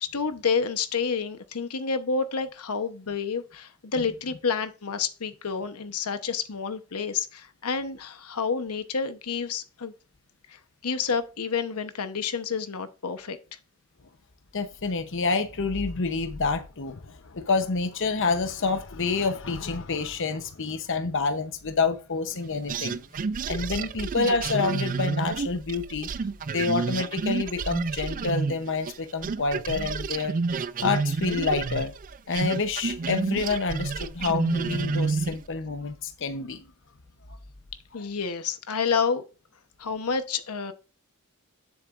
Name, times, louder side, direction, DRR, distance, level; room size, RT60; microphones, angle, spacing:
voice 1, 0.0-9.9 10.5-13.4 37.9-39.2 39.8-40.7, left 5 dB, 90° left, 1.0 m, -29 dB
voice 2, 14.5-23.0 23.5-26.1 26.5-30.3 30.8-31.9 32.3-36.6 37.3-37.4 37.9-38.0, left 4 dB, 60° left, 0.9 m, -28 dB
sound 1, 22.7-29.0 29.2-35.5, right 4 dB, 40° right, 0.4 m, -29 dB
9.8 x 7.6 x 2.5 m
head